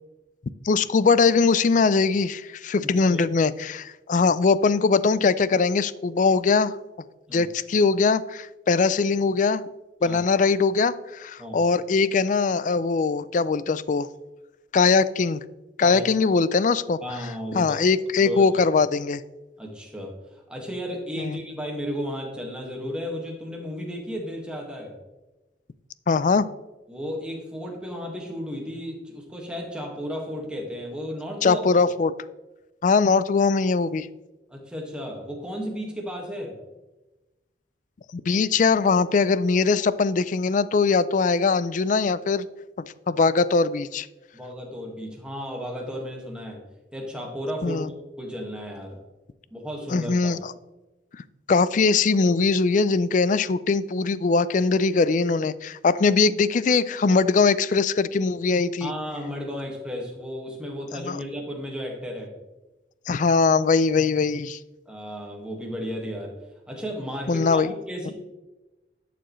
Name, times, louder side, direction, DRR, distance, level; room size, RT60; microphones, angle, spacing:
voice 1, 0.6-6.8 7.3-9.6 10.0-14.1 14.7-15.4 15.8-17.0 17.5-19.2 21.2-21.4 26.1-26.5 31.4-32.1 32.8-34.1 38.1-42.5 43.1-44.1 47.6-47.9 49.9-50.5 51.5-58.9 61.0-61.2 63.1-64.6 67.3-67.7 68.1-68.2, left 4 dB, 45° left, 17 dB, 0.4 m, -21 dB
voice 2, 2.8-3.2 7.3-7.5 10.0-10.2 11.4-11.6 15.8-16.0 17.0-17.8 18.2-18.5 19.6-20.2 20.5-24.9 26.9-31.8 34.5-36.6 44.3-46.6 46.9-47.8 48.2-49.0 49.5-50.3 58.8-62.3 64.8-66.3 66.7-68.1, equal, 5° right, 0 dB, 1.7 m, -34 dB
11.5 x 6.8 x 3.1 m, 1.1 s
head